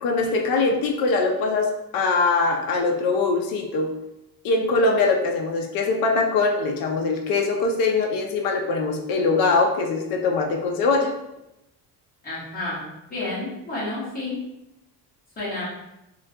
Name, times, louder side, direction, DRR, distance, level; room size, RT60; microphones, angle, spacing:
voice 1, 0.0-3.9 4.4-11.1, left 3 dB, 60° left, 2 dB, 0.5 m, -22 dB
voice 2, 12.2-12.8 13.1-14.4 15.4-15.6, left 2 dB, 20° left, -8 dB, 1.1 m, -30 dB
3.7 x 2.2 x 2.6 m, 0.90 s
cardioid pair, 180°, 40 cm